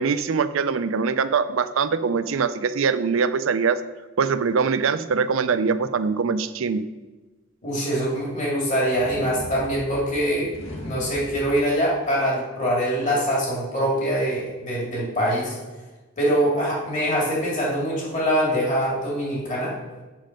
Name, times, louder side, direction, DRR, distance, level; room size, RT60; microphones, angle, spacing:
voice 1, 0.0-3.8 4.2-6.8, right 5 dB, 70° right, 13 dB, 0.4 m, -23 dB
voice 2, 7.6-10.5 10.8-15.6 16.2-19.8, equal, 35° left, -5 dB, 2.6 m, -24 dB
sound 1, 8.9-11.6, equal, 70° left, 1.7 m, -38 dB
7.5 x 6.2 x 5.2 m, 1.2 s
head